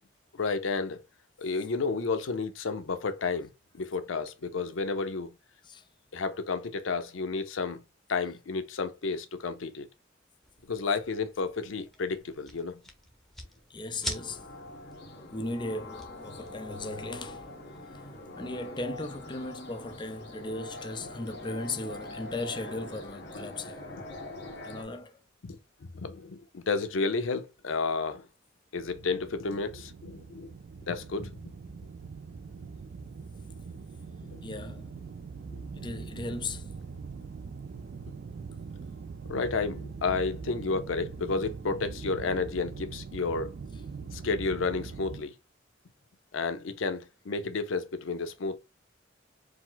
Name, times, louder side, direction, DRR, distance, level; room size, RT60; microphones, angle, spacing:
voice 1, 0.3-1.0 1.4-5.3 6.1-7.8 8.1-9.9 10.7-12.8 21.0-21.1 24.1-24.8 25.4-28.3 28.7-30.5 30.9-31.3 34.2-34.6 35.5-35.6 39.3-43.5 44.1-45.3 46.3-48.6, left 4 dB, 90° left, 0.6 m, -31 dB
sound 1, 10.4-17.1, equal, ahead, 0.9 m, -45 dB
voice 2, 13.7-14.5 15.3-17.5 17.9-18.1 18.4-23.8 24.6-25.2 34.4-34.9 35.7-36.7, left 2 dB, 25° left, 0.5 m, -37 dB
sound 2, 14.0-24.8, left 2 dB, 60° left, 1.3 m, -44 dB
sound 3, 28.8-45.2, right 5 dB, 55° right, 0.3 m, -42 dB
4.8 x 2.0 x 3.8 m
head